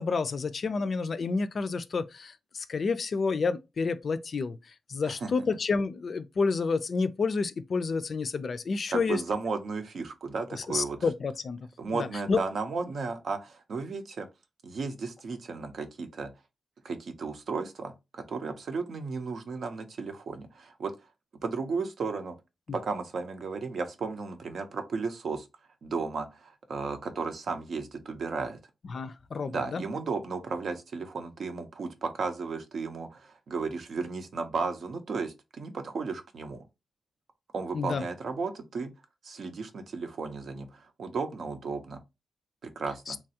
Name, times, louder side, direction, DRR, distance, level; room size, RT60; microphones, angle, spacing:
voice 1, 0.0-4.6 4.9-9.2 10.7-11.6 11.9-12.4 28.9-29.8 37.7-38.0 43.1-43.2, left 4 dB, 65° left, 0.3 m, -29 dB
voice 2, 5.0-5.5 8.9-11.0 11.8-14.3 14.6-16.3 16.8-20.9 21.4-22.3 22.7-25.4 25.8-28.6 29.5-36.6 37.5-38.9 39.2-42.0 42.6-43.2, right 4 dB, 75° right, 0.5 m, -34 dB
3.0 x 2.3 x 2.7 m
cardioid pair, 50°, 0 cm